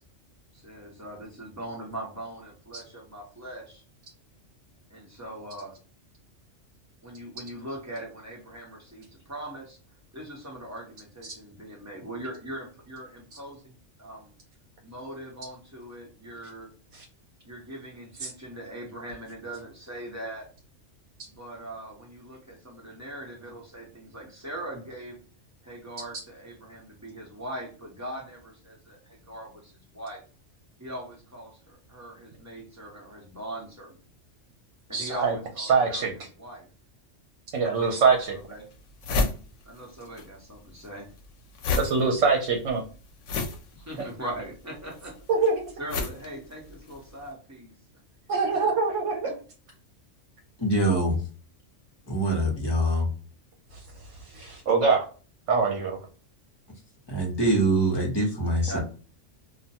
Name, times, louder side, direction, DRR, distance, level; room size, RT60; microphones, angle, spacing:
voice 1, 0.5-3.8 4.9-5.8 7.0-9.8 10.1-13.7 14.0-14.3 14.8-16.7 17.4-20.5 21.3-25.2 25.6-30.2 30.8-34.0 34.9-36.1 36.4-36.7 37.8-38.7 39.6-41.1 43.7-45.1 45.8-47.7 48.6-48.7 58.7-58.8, right 1 dB, 15° right, -2 dB, 0.8 m, -40 dB
voice 2, 34.9-36.1 37.5-38.4 41.8-42.8 45.3-45.6 48.3-49.3 53.7-53.8 54.2-55.1 55.5-56.0, right 4 dB, 75° right, 1 dB, 1.0 m, -24 dB
sound 1, 37.8-37.9 38.4-38.5 38.7-40.3 40.5-47.1, left 3 dB, 75° left, 0.9 m, -31 dB
voice 3, 50.6-51.2 52.1-53.1 57.1-58.8, right 1 dB, 25° left, -1 dB, 0.8 m, -24 dB
2.5 x 2.2 x 2.8 m, 0.38 s
omnidirectional pair, 1.3 m